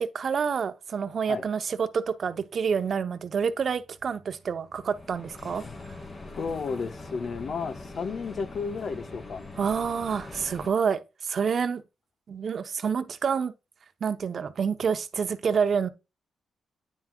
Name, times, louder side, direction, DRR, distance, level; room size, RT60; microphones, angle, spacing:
voice 1, 0.0-6.0 9.6-11.8 12.3-13.5 14.0-15.9, right 6 dB, 55° right, 0.8 m, -28 dB
sound 1, 4.7-10.7, left 2 dB, 40° left, 2.5 m, -43 dB
voice 2, 6.4-9.4, left 5 dB, 60° left, 1.1 m, -32 dB
9.4 x 5.9 x 2.3 m
cardioid pair, 85°, 0 cm